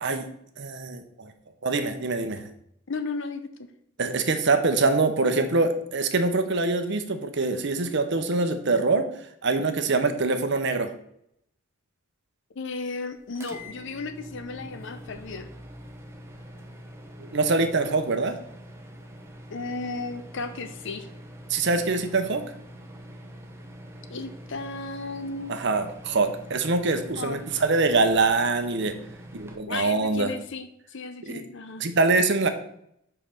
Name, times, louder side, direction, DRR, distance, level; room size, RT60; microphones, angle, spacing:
voice 1, 0.6-1.3 1.6-2.5 4.0-10.9 17.2-18.4 21.5-22.4 25.5-28.9 29.3-30.3 31.2-31.4 31.8-32.5, right 3 dB, 55° right, 7 dB, 0.8 m, -24 dB
voice 2, 2.9-3.7 12.6-15.5 19.5-21.1 24.1-25.6 27.2-27.4 29.7-31.8, left 3 dB, 60° left, 9 dB, 0.6 m, -34 dB
sound 1, 13.3-29.6, equal, 10° right, 0.8 m, -44 dB
5.2 x 4.9 x 5.9 m, 0.73 s
head